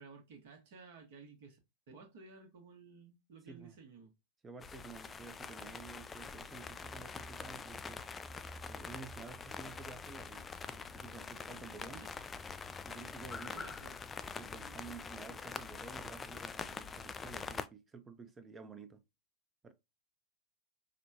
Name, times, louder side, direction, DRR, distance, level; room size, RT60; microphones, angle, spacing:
voice 1, 0.0-1.6 1.9-4.1 11.9-12.1 13.5-14.0 14.5-14.8, right 4 dB, 55° right, 1.3 m, -55 dB
voice 2, 3.5-3.8 4.4-8.1 8.7-12.1 12.9-13.7 14.4-19.0 19.6-19.7, right 4 dB, 15° right, 0.7 m, -51 dB
sound 1, 4.6-17.7, left 5 dB, 15° left, 0.3 m, -45 dB
5.1 x 2.2 x 2.7 m
figure-of-eight pair, 90°, 0 cm